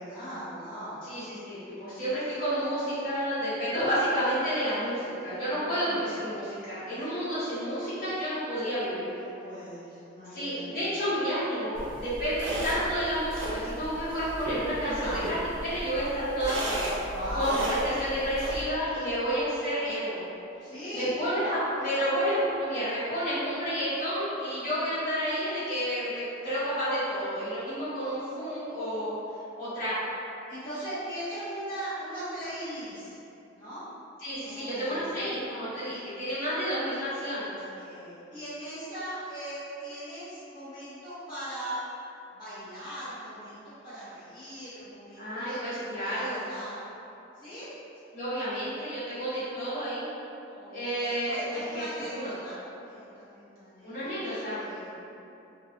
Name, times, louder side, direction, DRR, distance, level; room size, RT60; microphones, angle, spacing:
voice 1, 0.0-1.0 5.3-6.2 9.1-10.7 14.9-15.3 17.1-17.7 20.6-21.2 30.5-33.2 33.5-33.8 34.4-35.2 37.5-41.8 42.3-46.8 47.3-47.7 50.5-54.9, right 1 dB, 20° left, -15 dB, 0.7 m, -39 dB
voice 2, 1.1-9.1 10.3-15.3 15.6-16.9 17.3-20.2 20.9-29.1 29.6-29.9 34.2-37.5 45.2-46.4 48.1-50.0 50.7-51.8 52.1-52.4 53.8-54.5, equal, 45° left, -13 dB, 1.3 m, -30 dB
sound 1, 11.7-18.6, right 1 dB, 70° right, 0.5 m, -35 dB
2.8 x 2.5 x 3.1 m, 2.8 s
head